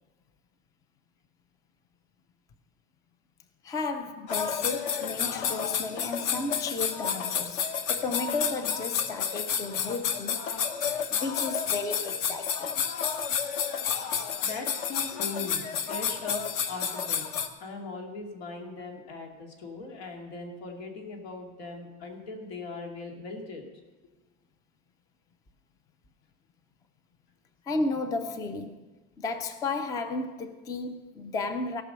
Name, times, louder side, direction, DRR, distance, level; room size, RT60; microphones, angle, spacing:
voice 1, 3.6-10.5 11.1-12.7 27.7-28.9 29.2-31.8, left 3 dB, 10° left, 0.4 m, -33 dB
sound 1, 4.3-17.5, left 7 dB, 55° left, 1.0 m, -30 dB
voice 2, 14.4-17.2 17.6-23.6, left 3 dB, 85° left, 2.6 m, -39 dB
17.0 x 6.0 x 6.7 m
cardioid pair, 165°, 31 cm